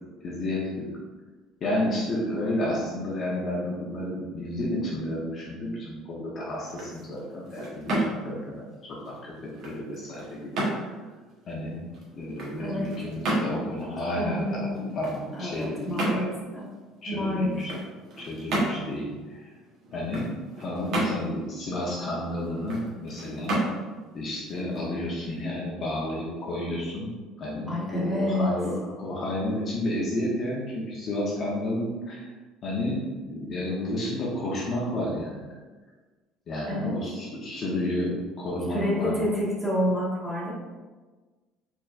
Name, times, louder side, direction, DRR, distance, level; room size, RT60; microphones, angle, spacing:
voice 1, 0.2-0.8 1.6-9.3 9.6-10.9 11.5-11.8 12.1-16.3 17.0-17.7 18.2-19.4 19.9-20.3 20.6-23.6 24.1-27.1 27.4-32.3 32.6-35.6 36.5-39.2, left 1 dB, 40° left, -5 dB, 0.9 m, -31 dB
sound 1, 6.5-25.4, right 1 dB, 55° right, 1.3 m, -34 dB
voice 2, 12.6-12.9 14.1-14.9 15.3-16.7 17.1-17.8 27.7-28.5 36.7-36.9 38.7-40.5, left 1 dB, ahead, -7 dB, 1.3 m, -28 dB
4.4 x 3.6 x 2.5 m, 1.3 s
cardioid pair, 140°, 0 cm